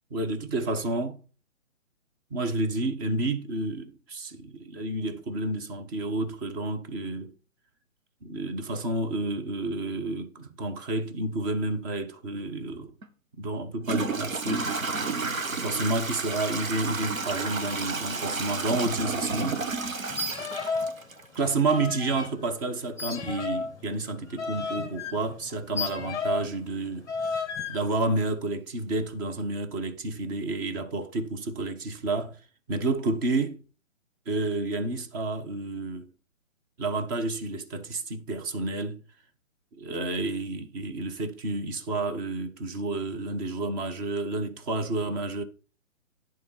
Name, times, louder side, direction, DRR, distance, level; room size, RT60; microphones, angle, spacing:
voice 1, 0.1-1.2 2.3-7.3 8.2-12.9 13.4-14.7 15.6-19.7 21.3-27.4 27.7-32.4 32.7-33.6 34.3-36.1 36.8-39.0 39.8-45.4, right 2 dB, 15° right, 0.7 m, -30 dB
Toilet flush / Trickle dribble, 13.0-13.1 13.8-21.6, right 4 dB, 85° right, 1.4 m, -31 dB
sound 1, 20.1-21.0 21.2-22.3 23.0-26.5 27.1-27.8, left 4 dB, 10° left, 1.1 m, -33 dB
10.5 x 3.8 x 5.5 m
figure-of-eight pair, 140°, 39 cm